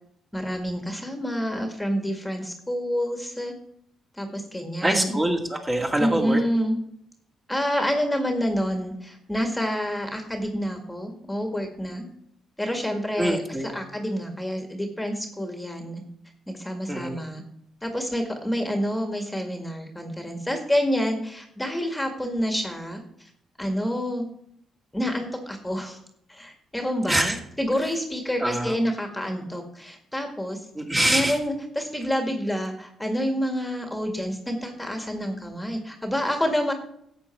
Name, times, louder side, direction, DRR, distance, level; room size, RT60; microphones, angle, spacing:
voice 1, 0.3-3.5 4.2-5.2 6.0-6.8 7.5-12.1 12.6-16.0 16.5-17.4 17.8-23.0 23.6-24.3 24.9-26.0 26.3-30.6 31.1-36.7, equal, 5° left, 4 dB, 1.9 m, -28 dB
voice 2, 4.8-6.4 13.2-13.8 16.9-17.2 27.1-27.4 27.8-27.9 28.4-28.8 30.7-31.4, right 1 dB, 20° right, 1 dB, 2.2 m, -24 dB
12.5 x 7.9 x 4.5 m, 0.72 s
cardioid pair, 90°, 0 cm